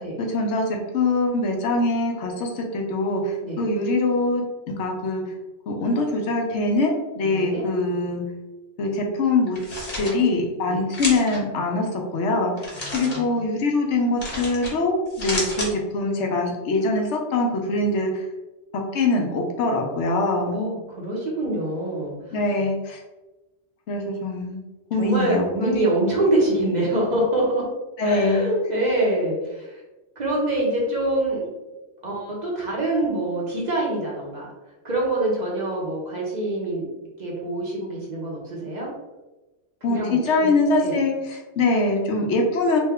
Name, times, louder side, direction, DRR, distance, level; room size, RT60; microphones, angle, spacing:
voice 1, 0.0-5.2 5.7-8.2 8.8-9.6 10.0-11.9 12.1-18.3 18.9-20.6 22.3-23.0 23.9-24.6 24.9-26.1 28.0-28.5 39.8-42.8, left 2 dB, 75° left, 1 dB, 0.9 m, -23 dB
voice 2, 7.3-7.6 10.7-10.8 12.7-13.4 20.5-22.1 25.0-27.7 28.0-29.8 30.2-31.4 32.0-34.5 34.8-36.9 37.2-38.9 39.9-40.9, right 1 dB, 45° right, -4 dB, 0.8 m, -25 dB
sound 1, 9.5-10.1 10.9-11.4 12.6-13.2 14.2-14.7 15.1-15.7, left 1 dB, 45° left, 1.0 m, -30 dB
3.1 x 2.2 x 3.4 m, 1.1 s
omnidirectional pair, 1.2 m